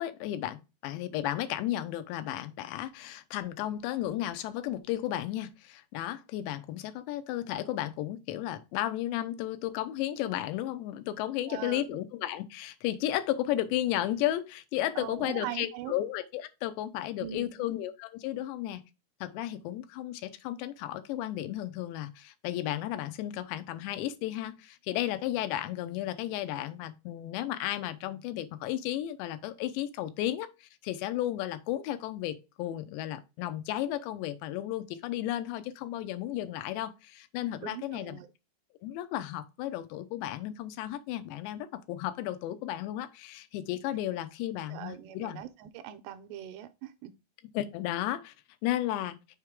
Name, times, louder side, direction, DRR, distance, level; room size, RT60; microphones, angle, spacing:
voice 1, 0.0-18.8 19.2-38.2 38.8-45.4 47.5-48.3 48.6-49.2, left 13 dB, 85° left, 2.9 m, -34 dB
voice 2, 11.5-12.0 15.0-15.9 17.2-17.6 37.6-38.3 44.7-47.1, right 11 dB, 80° right, 2.6 m, -41 dB
6.6 x 4.6 x 3.6 m
omnidirectional pair, 5.0 m